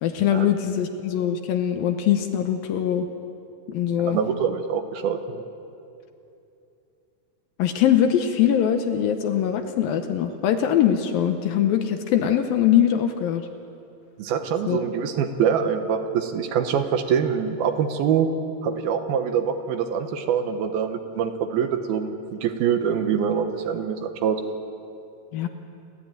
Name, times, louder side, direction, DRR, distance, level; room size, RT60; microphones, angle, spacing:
voice 1, 0.0-3.1 3.7-4.2 7.6-13.5 14.7-14.9 25.3-25.5, left 9 dB, 75° left, 7 dB, 2.4 m, -22 dB
voice 2, 4.0-5.4 14.2-18.3 18.6-24.4, right 7 dB, 75° right, 7 dB, 2.8 m, -24 dB
29.0 x 13.0 x 9.1 m, 2.7 s
omnidirectional pair, 4.8 m